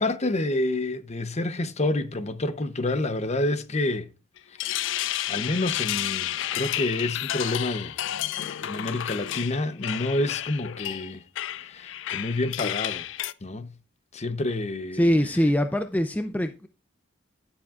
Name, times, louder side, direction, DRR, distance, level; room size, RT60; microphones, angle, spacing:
voice 1, 0.0-4.1 4.6-4.9 5.3-8.0 8.4-11.2 11.7-13.0 13.4-13.7 14.1-15.0, left 2 dB, 35° left, 0.8 m, -28 dB
sound 1, 4.4-13.3, left 12 dB, 70° left, 0.4 m, -31 dB
voice 2, 14.9-16.7, equal, 10° left, 0.5 m, -23 dB
16.5 x 7.1 x 2.4 m
head